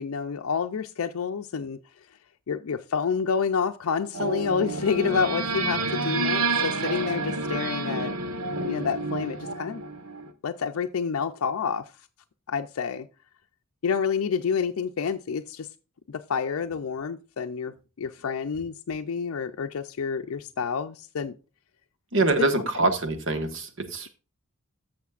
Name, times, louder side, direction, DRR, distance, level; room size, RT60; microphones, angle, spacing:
voice 1, 0.0-1.8 2.5-8.1 8.7-9.8 10.4-11.9 12.5-13.1 13.8-15.7 16.1-21.3 22.6-22.9, left 6 dB, 75° left, 0.4 m, -29 dB
sound 1, 4.1-10.3, right 3 dB, 75° right, 1.0 m, -29 dB
voice 2, 22.1-24.1, right 2 dB, 60° right, 1.3 m, -24 dB
14.0 x 6.5 x 2.4 m
head